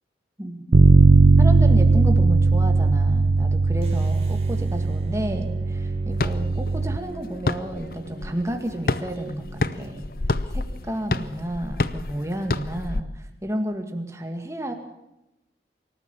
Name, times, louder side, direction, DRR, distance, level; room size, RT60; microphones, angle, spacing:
voice 1, 0.4-0.9 1.4-9.4 9.7-10.1 10.5-14.7, right 1 dB, 15° right, 5 dB, 2.2 m, -31 dB
Bass guitar, 0.7-7.0, right 3 dB, 85° right, 0.6 m, -18 dB
sound 1, 3.8-10.0, right 2 dB, 35° right, 3.3 m, -40 dB
sound 2, 6.1-13.0, left 2 dB, 55° left, 0.8 m, -29 dB
25.0 x 14.0 x 7.4 m, 0.93 s
head